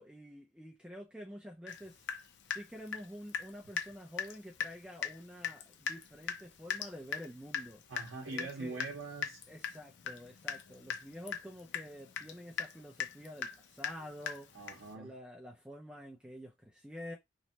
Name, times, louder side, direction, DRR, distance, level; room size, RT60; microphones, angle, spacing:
voice 1, 0.0-2.1 2.5-7.8 8.3-8.8 9.5-14.5 14.9-17.1, equal, 5° right, 0.4 m, -48 dB
Water tap faucet / Drip, 1.7-1.8 2.1-3.5 3.8-3.9 4.2-4.3 4.6-4.7 5.0-5.2 5.4-14.9, left 7 dB, 65° left, 0.4 m, -39 dB
voice 2, 7.9-9.4 14.5-15.1, right 3 dB, 85° right, 0.6 m, -42 dB
3.1 x 2.1 x 2.7 m
head